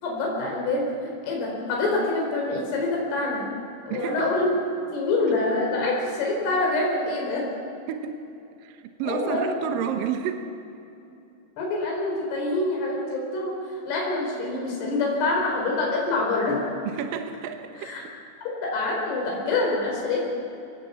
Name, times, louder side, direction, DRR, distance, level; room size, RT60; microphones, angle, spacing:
voice 1, 0.0-3.4 3.9-4.5 4.9-7.5 9.0-9.6 11.6-16.6 17.8-18.0 18.4-20.3, left 2 dB, 60° left, -1 dB, 6.4 m, -26 dB
voice 2, 3.9-4.3 7.9-8.2 8.6-10.5 16.8-18.1, right 8 dB, 75° right, 6 dB, 2.1 m, -31 dB
24.5 x 18.5 x 7.1 m, 2.7 s
omnidirectional pair, 5.4 m